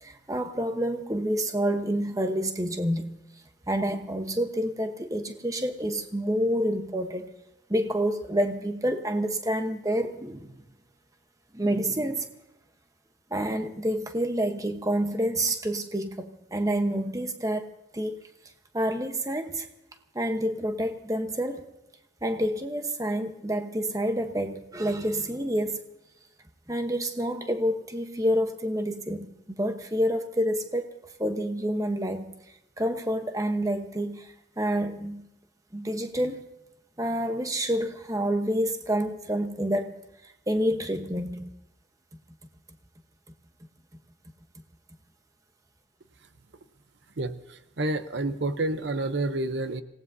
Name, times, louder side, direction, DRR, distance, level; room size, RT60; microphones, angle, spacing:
voice 1, 0.0-3.1 3.7-7.3 7.7-10.5 11.5-12.3 13.3-18.2 18.7-19.7 20.1-21.6 22.2-25.8 26.7-29.3 29.6-32.2 32.8-35.2 35.7-36.4 37.0-40.0 40.5-41.4, equal, 15° right, 1.0 m, -28 dB
voice 2, 47.2-49.8, right 2 dB, 65° right, 0.7 m, -29 dB
26.5 x 18.0 x 2.7 m
head